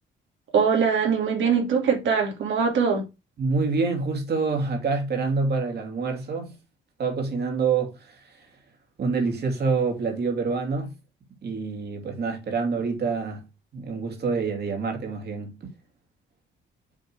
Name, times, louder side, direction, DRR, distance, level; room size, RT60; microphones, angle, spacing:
voice 1, 0.5-3.0, right 6 dB, 75° right, 2.3 m, -22 dB
voice 2, 3.4-6.5 7.0-8.3 9.0-10.9 11.4-13.4 13.7-15.6, right 4 dB, 55° right, 2.7 m, -26 dB
7.3 x 3.8 x 4.5 m
cardioid pair, 90°, 20 cm